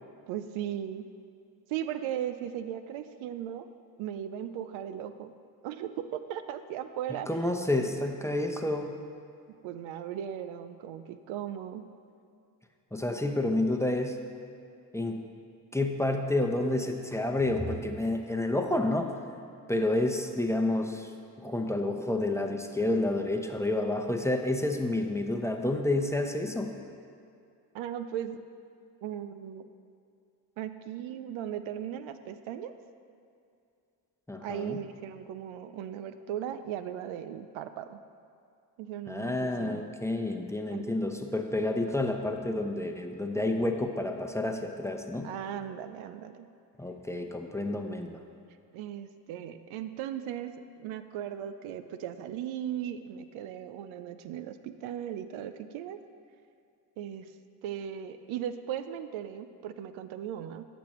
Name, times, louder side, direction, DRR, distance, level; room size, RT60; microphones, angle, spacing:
voice 1, 0.3-1.0 1.7-3.7 4.0-5.3 5.6-7.4 9.6-11.8 27.7-28.4 29.0-29.7 30.6-32.7 34.4-38.0 38.8-39.8 40.7-40.9 45.2-46.5 48.7-56.0 57.0-57.3 57.6-60.6, right 10 dB, 80° right, 10 dB, 0.5 m, -37 dB
voice 2, 7.3-8.9 12.9-14.2 14.9-15.2 15.7-19.1 19.7-21.1 21.4-26.7 34.3-34.8 39.1-45.3 46.8-48.2, left 2 dB, 5° left, 4 dB, 0.7 m, -29 dB
13.5 x 6.1 x 3.0 m, 2.4 s
supercardioid pair, 50°, 47 cm